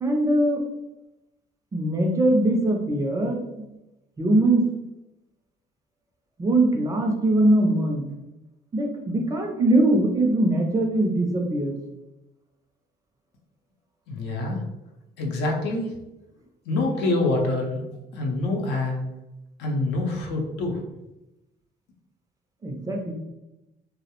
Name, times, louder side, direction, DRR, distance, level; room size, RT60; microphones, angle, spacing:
voice 1, 0.0-0.6 1.7-3.5 4.2-4.7 6.4-8.0 8.7-11.8 22.6-23.1, right 1 dB, 20° right, 2 dB, 0.4 m, -21 dB
voice 2, 14.1-14.6 15.2-15.9 16.7-19.0 19.6-20.8, left 2 dB, 85° left, 1 dB, 0.6 m, -26 dB
2.2 x 2.0 x 2.9 m, 0.94 s
cardioid pair, 110°, 17 cm